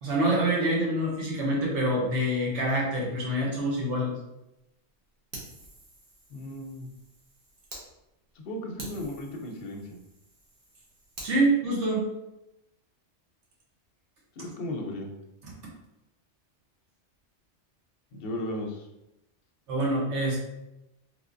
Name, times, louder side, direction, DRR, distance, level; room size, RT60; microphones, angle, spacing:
voice 1, 0.0-4.1 11.2-12.0 19.7-20.4, right 1 dB, 80° right, -3 dB, 1.3 m, -26 dB
Fire, 5.3-7.8 8.3-8.4 8.8-11.3, right 2 dB, 50° right, 1.1 m, -46 dB
voice 2, 6.3-6.9 8.4-9.8 14.4-15.1 18.1-18.9, left 1 dB, 60° left, 2 dB, 0.7 m, -35 dB
3.3 x 3.2 x 2.5 m, 0.90 s
omnidirectional pair, 1.2 m